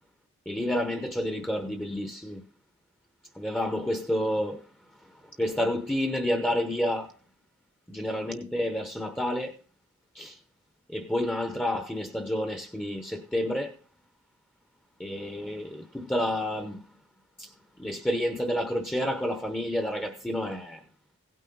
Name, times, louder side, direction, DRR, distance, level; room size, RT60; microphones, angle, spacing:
voice 1, 0.5-2.4 3.3-4.6 5.4-7.1 7.9-9.6 10.1-10.4 10.9-13.8 15.0-16.8 17.4-17.5 17.8-20.8, left 1 dB, 5° left, 0.8 m, -29 dB
16.5 x 9.3 x 3.9 m
head